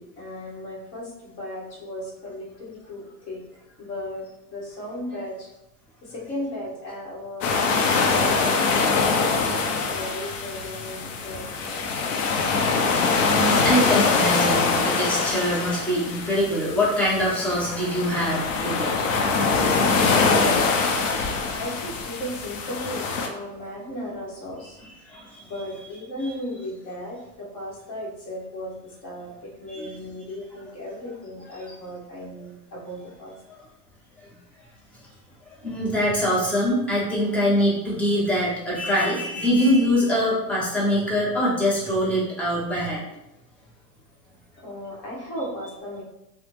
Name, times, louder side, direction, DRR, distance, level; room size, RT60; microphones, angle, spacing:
voice 1, 0.0-3.5 3.8-5.5 6.0-11.8 20.3-20.8 21.6-24.9 25.4-33.4 44.6-46.0, left 1 dB, 35° left, -4 dB, 1.1 m, -36 dB
sound 1, 7.4-23.3, left 4 dB, 55° left, 0.6 m, -23 dB
voice 2, 13.3-18.9 21.2-21.4 25.1-25.4 26.2-26.3 29.7-29.9 35.4-43.0, equal, 5° left, -7 dB, 0.5 m, -24 dB
2.9 x 2.1 x 3.3 m, 0.91 s
hypercardioid pair, 130°, 47 cm